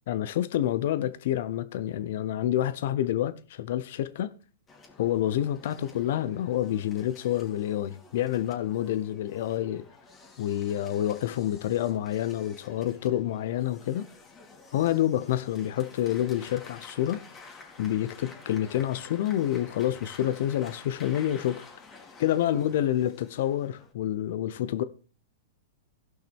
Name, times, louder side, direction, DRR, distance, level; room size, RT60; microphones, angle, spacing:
voice 1, 0.1-4.3 5.0-9.9 10.4-14.1 14.7-17.3 17.8-21.7 22.2-24.8, left 12 dB, 65° left, 0.8 m, -28 dB
sound 1, 4.7-23.9, left 4 dB, 20° left, 2.3 m, -51 dB
17.0 x 5.8 x 3.5 m
hypercardioid pair, 120°, 0 cm